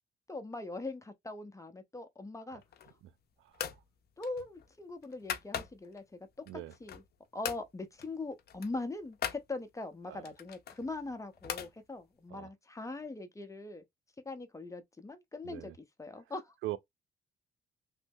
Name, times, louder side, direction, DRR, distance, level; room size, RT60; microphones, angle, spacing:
voice 1, 0.3-2.6 4.2-7.0 7.3-13.8 14.3-15.7 16.0-16.5, left 2 dB, 15° left, 0.7 m, -41 dB
sound 1, 2.6-3.1 3.5-3.8 4.2-6.0 6.5-7.1 7.4-7.7 8.0-8.1 8.4-9.4 10.2-11.7, left 9 dB, 55° left, 0.6 m, -40 dB
voice 2, 15.4-15.8 16.6-16.8, right 15 dB, 90° right, 0.4 m, -40 dB
3.1 x 2.0 x 3.4 m
cardioid pair, 90°, 20 cm